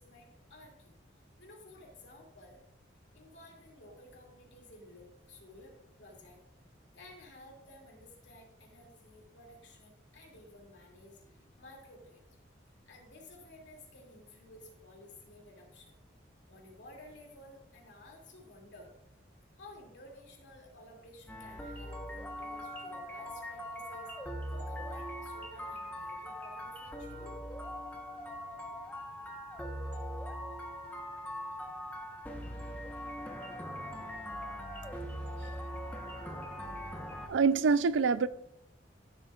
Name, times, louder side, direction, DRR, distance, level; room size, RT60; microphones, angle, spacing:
voice 1, 0.0-2.6 3.1-5.7 6.0-12.2 12.9-16.0 16.5-18.9 19.5-27.7, left 1 dB, 75° left, 2.6 m, -54 dB
sound 1, 21.3-37.3, equal, 10° left, 1.0 m, -41 dB
voice 2, 37.3-38.3, right 5 dB, 85° right, 0.4 m, -25 dB
14.5 x 7.3 x 2.4 m
head